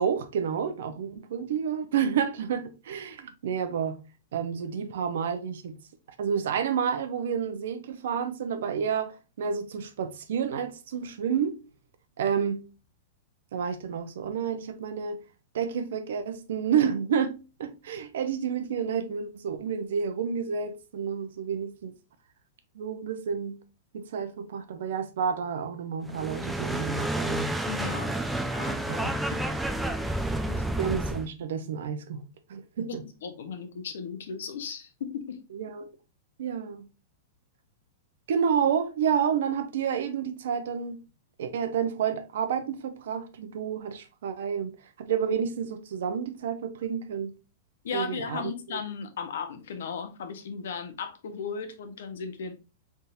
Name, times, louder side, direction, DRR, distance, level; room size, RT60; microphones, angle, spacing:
voice 1, 0.0-4.0 4.3-5.8 6.2-11.6 12.2-12.6 13.5-15.2 15.5-21.9 22.7-23.6 23.9-27.6 28.9-29.2 30.8-32.2 32.5-33.0 35.5-35.9 36.4-36.9 38.3-41.0 41.4-47.3 47.9-48.5, right 7 dB, 75° right, 0.7 m, -30 dB
sound 1, 26.1-31.3, right 1 dB, 5° right, 0.3 m, -30 dB
voice 2, 27.7-28.1 28.4-28.8 30.5-30.6 32.9-35.4 47.8-52.5, left 6 dB, 80° left, 0.9 m, -36 dB
4.3 x 3.5 x 2.6 m
supercardioid pair, 160°, 0 cm